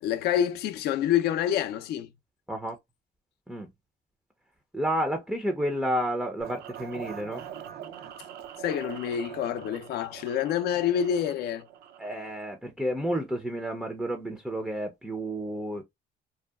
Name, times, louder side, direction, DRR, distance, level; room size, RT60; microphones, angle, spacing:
voice 1, 0.0-2.1 8.6-11.7, left 9 dB, 70° left, 0.4 m, -27 dB
voice 2, 4.7-7.5 12.0-15.8, equal, ahead, 0.4 m, -31 dB
sound 1, 6.4-12.3, right 9 dB, 70° right, 0.5 m, -43 dB
2.7 x 2.2 x 2.2 m
cardioid pair, 110°, 17 cm